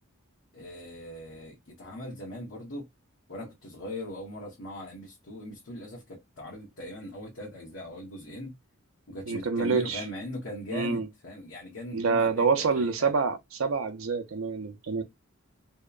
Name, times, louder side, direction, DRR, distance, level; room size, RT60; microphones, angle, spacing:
voice 1, 0.5-2.9 3.3-8.6 9.1-13.1, left 1 dB, 70° left, 1.0 m, -40 dB
voice 2, 9.3-10.0 10.7-11.1 11.9-15.0, right 5 dB, 80° right, 0.6 m, -27 dB
2.8 x 2.1 x 2.3 m
head